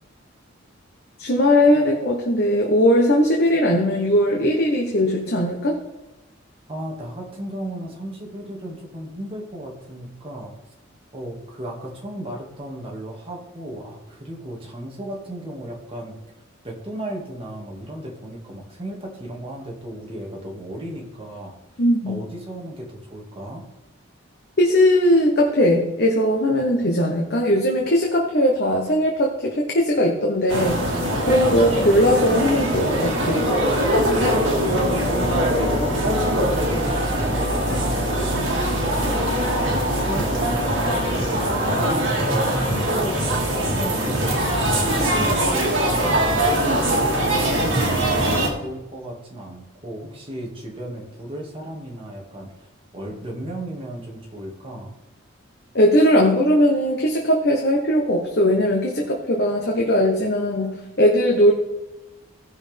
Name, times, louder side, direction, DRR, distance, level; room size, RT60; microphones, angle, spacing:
voice 1, 1.2-5.8 21.8-22.2 24.6-30.8 31.2-33.5 55.7-61.5, equal, 50° left, 0 dB, 1.2 m, -19 dB
voice 2, 6.7-10.6 11.1-16.2 16.6-23.7 35.1-39.1 39.7-42.4 42.6-45.8 46.5-52.7 52.9-55.0, right 1 dB, 30° right, -1 dB, 2.1 m, -35 dB
sound 1, 30.5-48.5, right 1 dB, 65° right, 2.5 m, -22 dB
17.0 x 6.2 x 3.5 m, 0.98 s
head